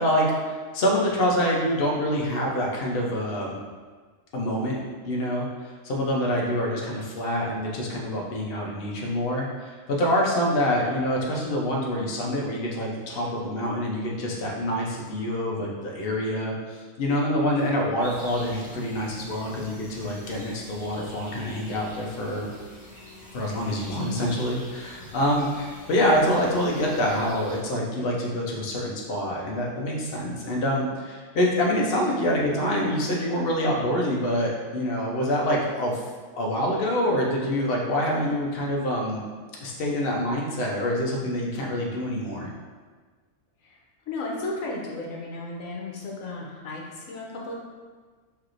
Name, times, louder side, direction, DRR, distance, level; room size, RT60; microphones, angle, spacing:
voice 1, 0.0-3.6 4.3-4.8 5.0-22.5 23.3-36.0 36.4-39.2 39.6-42.5, equal, 50° left, -2 dB, 0.8 m, -26 dB
sound 1, 18.0-27.6, left 1 dB, 20° left, 1.5 m, -45 dB
voice 2, 44.1-47.5, left 2 dB, 80° left, -2 dB, 1.2 m, -34 dB
4.5 x 3.3 x 2.5 m, 1.5 s
omnidirectional pair, 1.4 m